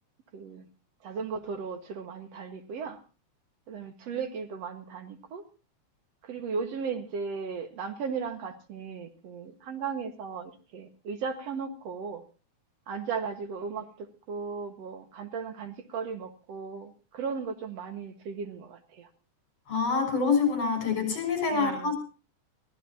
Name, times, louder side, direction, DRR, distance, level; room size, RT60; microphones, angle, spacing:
voice 1, 0.3-0.6 1.0-3.0 3.7-5.4 6.2-12.2 12.9-19.1 21.5-21.9, right 5 dB, 60° right, 7 dB, 2.6 m, -36 dB
voice 2, 19.7-21.9, left 5 dB, 55° left, 4 dB, 7.2 m, -26 dB
24.5 x 15.5 x 2.8 m, 0.34 s
omnidirectional pair, 3.3 m